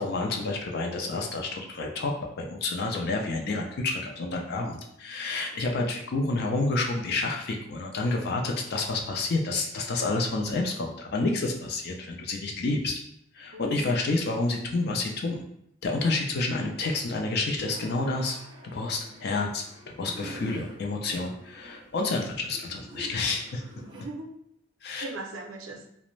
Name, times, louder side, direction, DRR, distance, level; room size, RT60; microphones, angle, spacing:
voice 1, 0.0-2.1 2.4-13.0 13.4-15.4 15.8-18.4 18.6-19.6 20.0-23.6 24.8-25.0, left 3 dB, 55° left, 1 dB, 0.4 m, -29 dB
voice 2, 5.5-5.9 13.5-13.9 23.8-24.3 25.0-25.9, right 2 dB, 85° right, 3 dB, 0.5 m, -39 dB
sound 1, 17.7-24.0, right 1 dB, 25° right, 0.5 m, -47 dB
2.5 x 2.0 x 3.0 m, 0.76 s
head